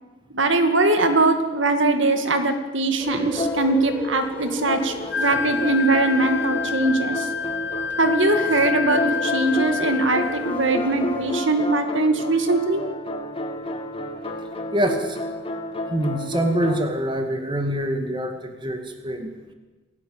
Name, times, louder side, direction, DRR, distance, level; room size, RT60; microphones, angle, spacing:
voice 1, 0.3-7.3 8.0-12.8, right 2 dB, 60° right, 7 dB, 2.2 m, -21 dB
sound 1, 3.0-11.4, left 1 dB, 10° left, 4.8 m, -37 dB
sound 2, 3.4-4.2 4.6-16.8, left 1 dB, 25° left, 2.7 m, -31 dB
Wind instrument woodwind instrument, 5.1-10.6, left 5 dB, 50° left, 1.1 m, -28 dB
voice 2, 14.7-15.2 15.9-19.3, right 1 dB, 20° right, 5 dB, 2.3 m, -25 dB
28.0 x 17.0 x 8.8 m, 1.2 s
head